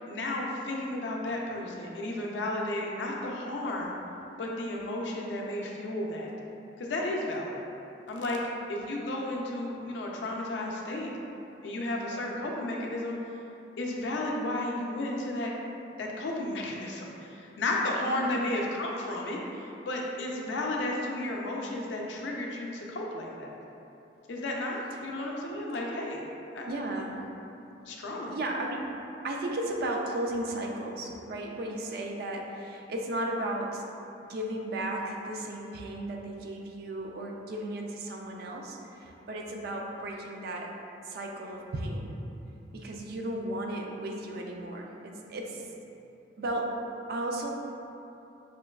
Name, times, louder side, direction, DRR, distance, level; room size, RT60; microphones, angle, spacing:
voice 1, 0.1-3.9 4.4-6.3 6.8-7.6 8.1-8.4 8.7-11.1 11.6-13.2 13.8-15.5 15.9-23.5 24.3-26.2 26.5-26.7 27.8-28.3, left 1 dB, 75° left, -1 dB, 0.4 m, -33 dB
voice 2, 26.7-27.3 28.3-28.9 29.2-33.8 34.3-40.7 41.0-42.2 42.7-45.7 46.4-46.7 47.1-47.5, right 1 dB, 55° right, 0 dB, 0.3 m, -35 dB
5.0 x 2.2 x 2.2 m, 2.9 s
head